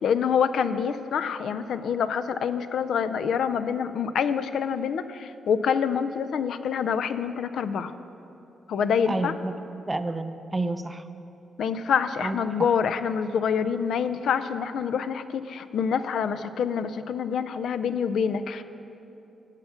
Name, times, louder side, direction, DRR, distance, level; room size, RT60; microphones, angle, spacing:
voice 1, 0.0-7.9 8.7-9.3 11.6-18.6, left 7 dB, 65° left, 12 dB, 0.4 m, -26 dB
voice 2, 9.1-9.5 9.9-11.0 12.2-12.4, right 2 dB, 15° right, 10 dB, 0.4 m, -29 dB
15.5 x 5.7 x 5.7 m, 2.8 s
wide cardioid pair, 165°, 0 cm